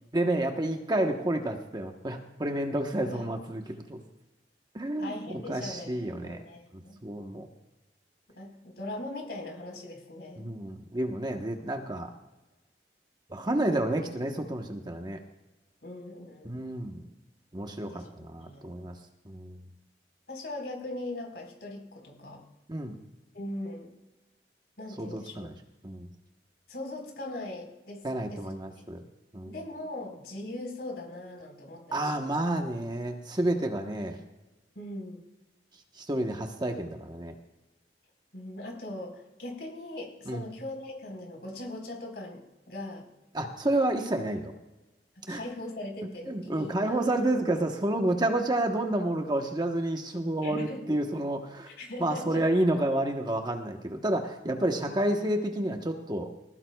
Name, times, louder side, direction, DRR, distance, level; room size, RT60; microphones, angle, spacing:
voice 1, 0.1-3.6 3.9-4.0 4.7-6.4 6.7-7.5 10.4-12.1 13.3-15.2 16.4-17.0 17.5-19.0 19.2-19.7 22.7-23.0 25.0-25.5 25.8-26.1 28.0-29.0 29.3-29.5 31.9-34.2 36.0-37.3 40.3-40.4 43.3-44.5 45.3-45.4 46.0-51.7 52.0-56.3, right 1 dB, 25° right, 3 dB, 1.1 m, -30 dB
voice 2, 5.0-7.0 8.4-10.5 15.8-16.6 17.8-18.7 20.3-22.4 23.3-23.9 24.8-25.6 26.7-28.4 29.5-32.3 34.7-35.2 38.3-43.1 45.3-47.2 50.4-50.8 51.7-52.4 54.9-55.0 55.2-55.3, left 1 dB, 70° left, 2 dB, 4.4 m, -40 dB
20.5 x 18.5 x 2.3 m, 1.1 s
head